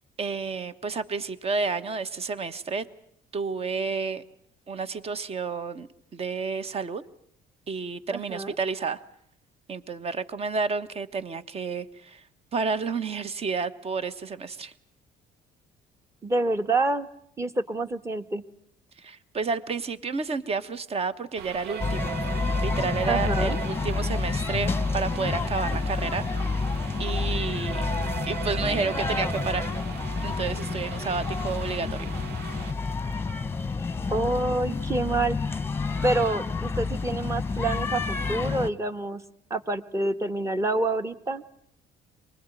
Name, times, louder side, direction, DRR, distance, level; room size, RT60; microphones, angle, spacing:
voice 1, 0.2-2.9 3.3-4.2 4.7-7.0 7.7-9.0 9.7-12.2 12.5-14.7 19.0-22.2 22.6-26.2 27.0-27.8 28.3-29.7 30.2-32.1, right 4 dB, 35° right, 14 dB, 1.3 m, -30 dB
voice 2, 8.1-8.5 16.2-17.1 17.4-18.4 23.1-23.6 34.1-35.4 36.0-39.2 39.5-41.4, right 2 dB, 15° right, 10 dB, 1.4 m, -27 dB
sound 1, 21.4-32.7, right 9 dB, 70° right, 1.0 m, -38 dB
sound 2, 21.8-38.7, left 4 dB, 15° left, 1.1 m, -29 dB
24.0 x 21.0 x 9.2 m, 0.68 s
cardioid pair, 110°, 17 cm